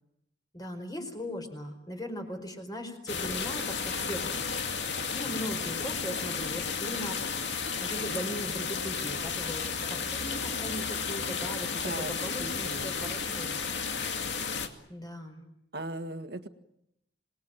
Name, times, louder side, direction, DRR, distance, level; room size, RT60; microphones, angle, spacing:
voice 1, 0.5-4.3 5.1-7.2 7.8-13.6 14.9-15.4, equal, 20° left, 5 dB, 4.8 m, -39 dB
sound 1, 3.1-14.7, left 5 dB, 75° left, 2.4 m, -33 dB
voice 2, 11.7-12.9 15.7-16.5, right 2 dB, 60° right, 9 dB, 1.8 m, -39 dB
27.0 x 20.0 x 9.1 m, 0.78 s
head